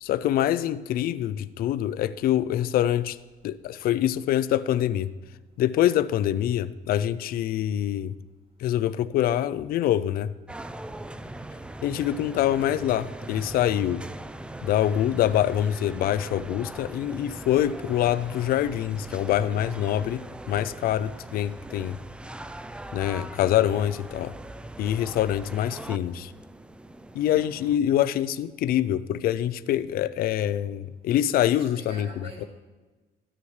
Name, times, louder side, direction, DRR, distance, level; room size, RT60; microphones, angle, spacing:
voice 1, 0.0-3.2 3.4-5.1 5.6-8.1 8.6-10.3 11.8-14.0 14.6-22.0 22.9-24.3 24.8-26.3 27.1-32.1, left 11 dB, 60° left, 14 dB, 0.4 m, -25 dB
sound 1, 10.5-27.8, right 1 dB, 5° right, 0.4 m, -40 dB
voice 2, 11.2-11.5 31.6-32.5, right 3 dB, 35° right, 0 dB, 2.6 m, -45 dB
13.0 x 9.9 x 3.2 m, 1.2 s
cardioid pair, 110°, 17 cm